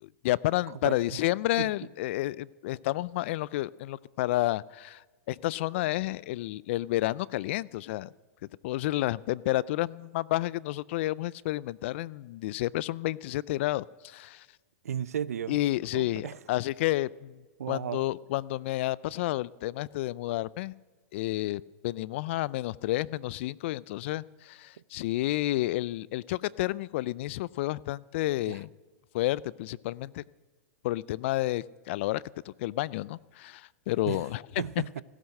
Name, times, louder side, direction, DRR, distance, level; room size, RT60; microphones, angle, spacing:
voice 1, 0.0-5.0 5.3-8.1 8.6-14.5 15.5-17.3 17.7-20.7 21.1-28.7 29.1-30.2 30.8-34.6, left 16 dB, 55° left, 0.4 m, -30 dB
voice 2, 0.8-1.2 1.6-1.7 14.8-15.6 15.9-16.4 17.6-18.0 28.5-28.6 34.1-34.2 34.6-35.0, right 9 dB, 85° right, 0.5 m, -34 dB
15.5 x 12.5 x 6.5 m
hypercardioid pair, 130°, 8 cm